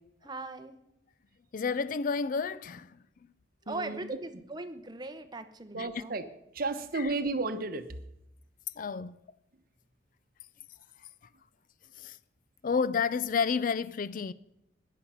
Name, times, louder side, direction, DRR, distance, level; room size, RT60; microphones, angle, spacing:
voice 1, 0.2-0.8 3.7-6.2, right 2 dB, 20° right, 0.9 m, -40 dB
voice 2, 1.5-3.0 5.7-6.0 6.9-7.1 8.8-9.2 11.0-11.1 12.0-12.2 12.6-14.3, left 5 dB, 45° left, 0.4 m, -31 dB
voice 3, 3.7-4.0 5.7-6.2 6.5-7.8, right 3 dB, 50° right, 1.1 m, -32 dB
15.0 x 10.5 x 5.6 m
head